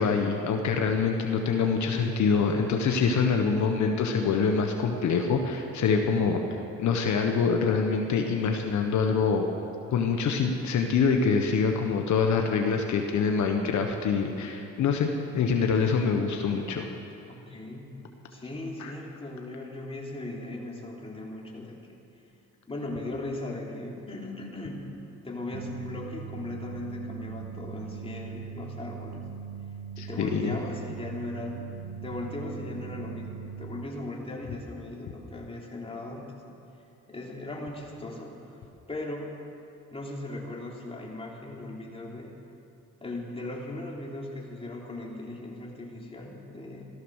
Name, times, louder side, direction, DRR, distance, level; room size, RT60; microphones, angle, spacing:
voice 1, 0.0-6.4 6.8-9.5 9.9-15.1 15.3-16.9 18.8-18.9 30.0-30.6, left 5 dB, 70° left, 3 dB, 1.3 m, -25 dB
voice 2, 17.3-17.9 18.3-21.8 22.7-24.8 25.2-29.3 30.0-31.6 32.0-36.4 37.1-38.4 38.9-39.3 39.9-42.3 43.0-46.9, left 2 dB, 20° left, -2 dB, 3.2 m, -38 dB
sound 1, 25.5-33.9, right 7 dB, 60° right, 1.0 m, -40 dB
15.5 x 13.5 x 6.4 m, 2.7 s
cardioid pair, 90°, 30 cm